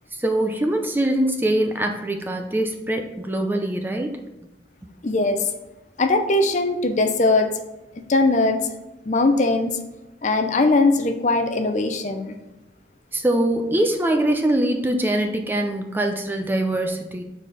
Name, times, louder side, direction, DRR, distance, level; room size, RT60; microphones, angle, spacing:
voice 1, 0.2-4.2 13.1-17.2, right 1 dB, 10° right, 4 dB, 0.5 m, -23 dB
voice 2, 5.0-5.5 6.0-7.5 8.1-8.7 9.0-9.7 10.2-12.4, left 2 dB, 40° left, 6 dB, 0.6 m, -20 dB
7.0 x 4.2 x 4.1 m, 1.0 s
head